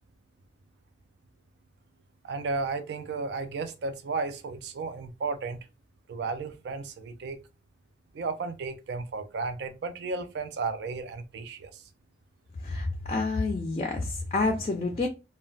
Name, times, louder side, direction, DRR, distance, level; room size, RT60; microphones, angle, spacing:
voice 1, 2.2-5.6 6.1-7.4 8.1-11.8, right 4 dB, 65° right, 0.3 m, -33 dB
voice 2, 12.6-15.1, left 3 dB, 35° left, 0.3 m, -28 dB
2.2 x 2.1 x 3.8 m
head